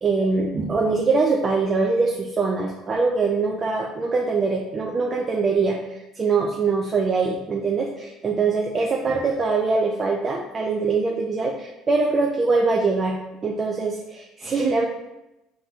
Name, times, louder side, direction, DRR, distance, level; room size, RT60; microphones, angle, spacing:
voice 1, 0.0-13.2 13.4-14.9, right 4 dB, 35° right, 0 dB, 0.5 m, -23 dB
3.8 x 2.8 x 3.5 m, 0.93 s
supercardioid pair, 90°, 0 cm